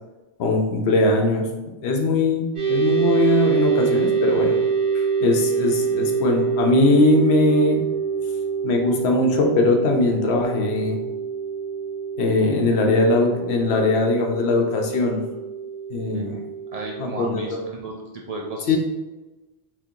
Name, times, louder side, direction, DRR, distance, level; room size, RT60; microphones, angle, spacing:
voice 1, 0.4-1.5 1.8-4.5 4.9-7.8 8.6-11.0 12.2-15.2 15.9-16.4 17.0-17.6 18.7-18.8, left 2 dB, 85° left, 2 dB, 0.9 m, -20 dB
sound 1, 2.5-17.3, right 6 dB, 30° right, 1.5 m, -25 dB
voice 2, 16.1-18.8, right 2 dB, 50° right, -2 dB, 0.5 m, -34 dB
3.6 x 2.8 x 2.7 m, 1.1 s
omnidirectional pair, 1.0 m